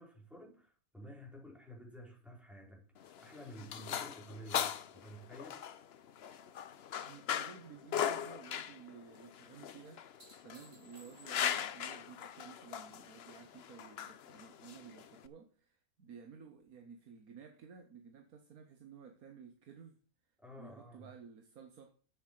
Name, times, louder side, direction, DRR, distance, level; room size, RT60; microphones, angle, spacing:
voice 1, 0.0-5.7 20.4-21.1, equal, ahead, 4.0 m, -52 dB
sound 1, 3.0-15.3, left 9 dB, 55° left, 0.8 m, -40 dB
sound 2, 3.3-6.8 7.1-7.7 9.8-11.7 14.3-14.4, equal, 45° right, 4.4 m, -65 dB
voice 2, 6.9-10.0 10.4-20.0 20.6-22.0, right 6 dB, 85° right, 1.6 m, -54 dB
8.2 x 7.5 x 6.4 m
omnidirectional pair, 1.5 m